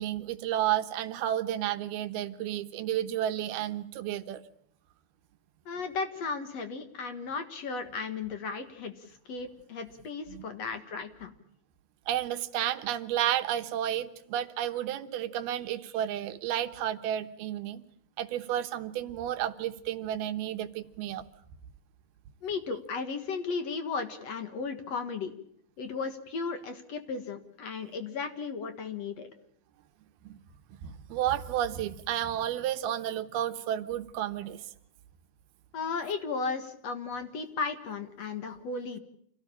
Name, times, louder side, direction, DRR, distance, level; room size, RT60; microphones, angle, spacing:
voice 1, 0.0-4.4 10.3-10.4 12.1-17.8 18.2-21.2 30.2-30.4 30.8-34.6, right 11 dB, 80° right, 9 dB, 3.0 m, -31 dB
voice 2, 5.7-11.3 22.4-25.3 25.8-29.3 35.7-39.0, left 4 dB, 55° left, 8 dB, 2.2 m, -35 dB
27.5 x 17.0 x 8.7 m, 0.70 s
omnidirectional pair, 4.4 m